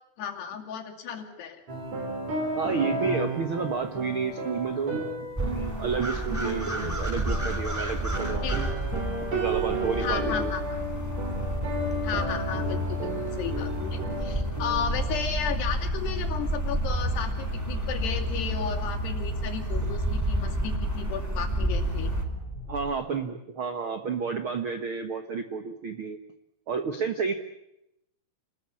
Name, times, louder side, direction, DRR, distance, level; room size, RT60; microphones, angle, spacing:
voice 1, 0.2-1.6 8.4-8.7 10.0-10.8 12.0-22.1, left 8 dB, 80° left, 2 dB, 4.7 m, -34 dB
sound 1, 1.7-15.0, right 2 dB, 40° right, 5.7 m, -33 dB
voice 2, 2.5-5.0 5.4-8.4 9.3-10.5 22.7-26.2 26.7-27.3, right 5 dB, 70° right, 7 dB, 1.2 m, -31 dB
sound 2, 5.3-22.2, equal, 5° right, 1.9 m, -31 dB
sound 3, 7.1-23.0, right 1 dB, 15° left, 4.5 m, -36 dB
29.0 x 20.5 x 8.7 m, 0.84 s
omnidirectional pair, 4.7 m